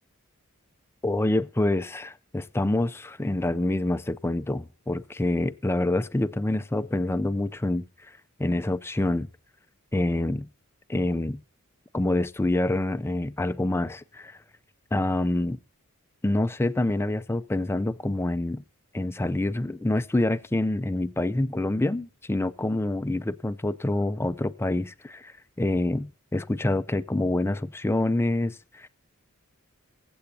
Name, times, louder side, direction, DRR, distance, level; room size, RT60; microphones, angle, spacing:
voice 1, 1.0-9.3 9.9-10.5 10.9-11.4 11.9-14.4 14.9-15.6 16.2-18.6 18.9-28.9, left 1 dB, 10° left, 0.4 m, -26 dB
22.0 x 7.9 x 2.7 m
head